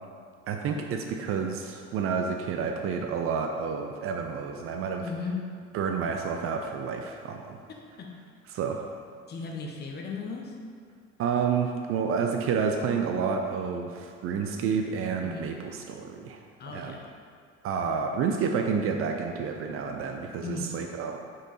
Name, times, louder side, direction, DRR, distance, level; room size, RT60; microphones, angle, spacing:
voice 1, 0.5-5.0 5.7-7.6 8.5-8.9 11.2-16.4 16.7-17.0 17.6-21.2, right 6 dB, 40° right, 3 dB, 0.5 m, -29 dB
voice 2, 5.0-5.4 7.7-8.1 9.3-10.6 15.2-15.5 16.6-17.1 20.4-20.7, left 4 dB, 30° left, 1 dB, 0.9 m, -36 dB
5.6 x 4.9 x 4.1 m, 2.2 s
figure-of-eight pair, 55°, 36 cm